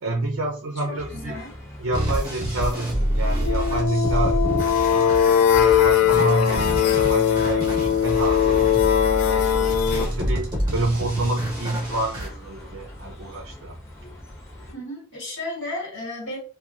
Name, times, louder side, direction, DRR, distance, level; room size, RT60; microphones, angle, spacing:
voice 1, 0.0-1.4 1.8-4.4 4.6-8.7 9.2-13.8, right 2 dB, 60° right, 0.5 m, -28 dB
voice 2, 0.8-1.5 14.7-16.4, left 1 dB, 55° left, 1.3 m, -33 dB
sound 1, 1.0-14.7, left 1 dB, 15° left, 0.6 m, -41 dB
sound 2, 1.9-12.3, equal, 20° right, 1.0 m, -27 dB
sound 3, 3.4-10.1, left 9 dB, 80° left, 0.3 m, -20 dB
2.9 x 2.2 x 2.4 m
head